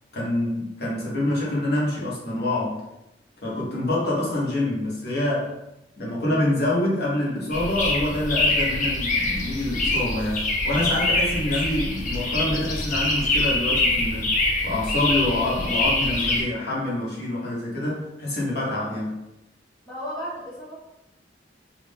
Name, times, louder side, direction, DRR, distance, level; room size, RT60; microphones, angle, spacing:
voice 1, 0.1-2.8 3.4-5.5 6.0-14.3 14.6-19.2, left 1 dB, 60° left, -5 dB, 1.2 m, -26 dB
sound 1, 7.5-16.4, left 2 dB, 45° left, 0.7 m, -24 dB
voice 2, 19.8-20.8, equal, 10° left, -10 dB, 1.4 m, -34 dB
3.1 x 2.5 x 3.4 m, 0.91 s
head